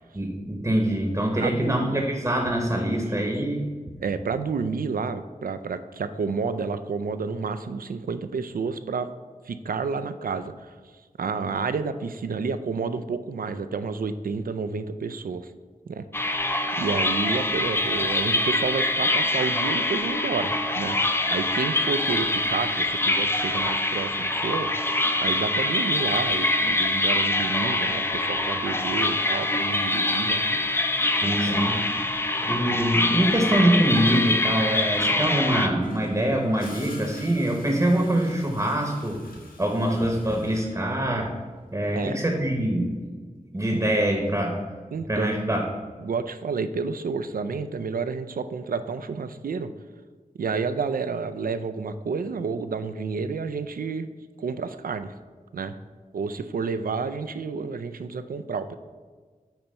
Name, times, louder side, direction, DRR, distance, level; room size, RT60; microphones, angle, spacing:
voice 1, 0.1-4.0 31.2-31.8 32.4-39.2 39.6-41.3 41.7-42.9 43.5-44.6 45.1-45.6, right 1 dB, 25° right, 1 dB, 0.9 m, -24 dB
voice 2, 1.4-2.0 2.9-3.4 4.0-9.1 9.4-10.8 11.2-15.5 15.9-16.0 16.8-21.0 21.3-24.7 25.2-30.4 31.2-31.8 32.6-32.8 39.9-40.1 41.9-42.2 43.7-43.8 44.9-45.4 46.0-49.7 50.4-54.1 54.4-55.1 55.5-55.8 56.1-58.8, right 5 dB, 75° right, 11 dB, 0.4 m, -30 dB
sound 1, 16.1-35.7, left 2 dB, 15° left, 0.5 m, -24 dB
Gurgling / Toilet flush, 35.8-41.5 43.5-43.8, left 2 dB, 75° left, 1.1 m, -45 dB
8.8 x 2.9 x 4.3 m, 1.5 s
wide cardioid pair, 80°, 15 cm